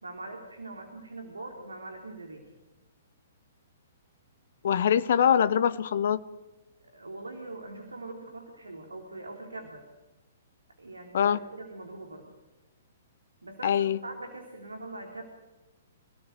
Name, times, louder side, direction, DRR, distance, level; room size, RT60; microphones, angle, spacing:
voice 1, 0.0-2.4 6.9-9.9 10.8-12.3 13.4-15.2, right 2 dB, 80° right, 3 dB, 3.6 m, -42 dB
voice 2, 4.6-6.2 11.1-11.4 13.6-14.0, left 8 dB, 55° left, 15 dB, 0.9 m, -23 dB
27.5 x 17.5 x 8.0 m, 1.1 s
figure-of-eight pair, 115°, 0 cm